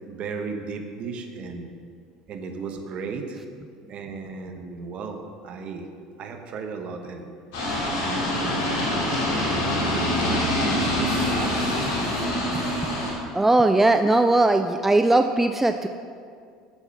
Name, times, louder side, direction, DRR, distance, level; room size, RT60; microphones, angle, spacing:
voice 1, 0.0-1.7 2.3-3.4 3.9-5.9 6.2-7.3 7.8-9.3 9.6-10.3 10.7-11.1, right 4 dB, 45° right, 5 dB, 1.0 m, -36 dB
sound 1, 7.5-13.1, left 1 dB, 65° left, 2.6 m, -25 dB
voice 2, 13.3-15.9, right 2 dB, 10° right, 8 dB, 0.3 m, -19 dB
7.2 x 7.1 x 5.7 m, 2.2 s
hypercardioid pair, 70°, 3 cm